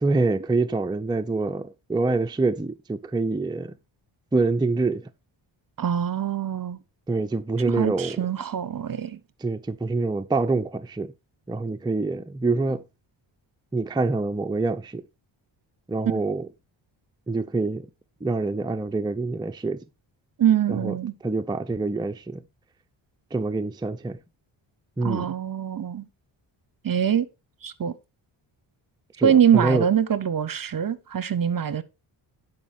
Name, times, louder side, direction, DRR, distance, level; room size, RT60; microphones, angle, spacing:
voice 1, 0.0-3.8 4.3-5.1 7.1-8.2 9.4-11.1 11.5-12.8 13.7-15.0 15.9-16.5 17.3-17.9 18.2-19.8 20.7-20.9 21.2-22.4 23.3-24.2 25.0-25.3 29.2-29.9, right 3 dB, 10° right, 0.5 m, -26 dB
voice 2, 5.8-6.8 7.8-9.2 16.0-16.2 20.4-21.1 25.0-26.1 26.8-27.3 27.6-27.9 29.2-31.8, right 9 dB, 45° right, 0.9 m, -23 dB
11.0 x 5.2 x 4.2 m
cardioid pair, 75°, 48 cm